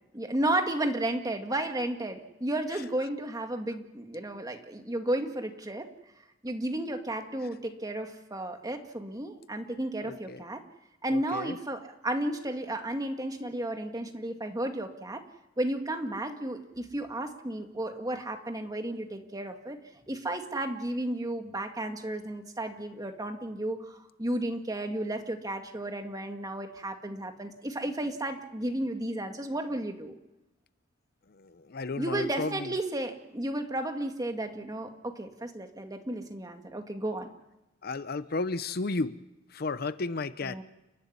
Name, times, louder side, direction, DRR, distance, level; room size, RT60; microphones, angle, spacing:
voice 1, 0.1-5.9 6.4-10.6 11.0-15.2 15.6-19.8 20.1-30.2 32.0-37.3 40.4-40.6, right 1 dB, 20° right, 5 dB, 2.0 m, -33 dB
voice 2, 10.0-10.4 11.1-11.5 31.4-32.7 37.8-39.1 39.5-40.6, left 3 dB, 55° left, 14 dB, 0.7 m, -33 dB
30.0 x 12.0 x 9.6 m, 1.0 s
head